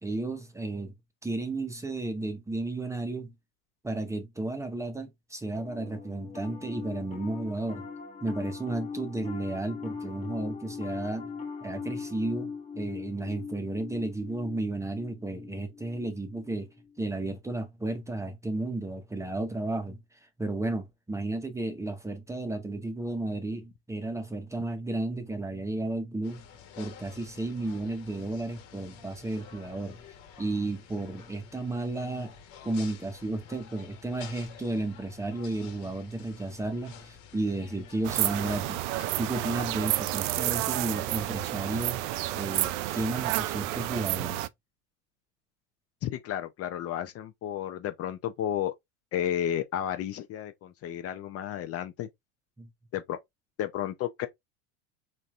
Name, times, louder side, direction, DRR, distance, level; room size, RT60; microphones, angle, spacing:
voice 1, 0.0-0.9 1.2-3.3 3.8-7.9 8.2-11.3 11.6-16.7 17.0-20.0 20.4-26.4 26.8-30.0 30.4-32.3 32.6-38.8 39.2-42.1 42.3-44.4 52.6-52.7, right 2 dB, 10° right, 0.8 m, -33 dB
Piano, 5.5-17.0, left 5 dB, 20° left, 1.2 m, -40 dB
sound 1, 26.2-43.9, left 8 dB, 55° left, 1.5 m, -51 dB
sound 2, 38.0-44.5, right 16 dB, 65° right, 0.5 m, -30 dB
voice 2, 46.0-48.7 49.1-52.1 52.9-53.2 53.6-54.3, left 10 dB, 40° left, 0.7 m, -32 dB
4.2 x 3.2 x 2.5 m
supercardioid pair, 115°, 37 cm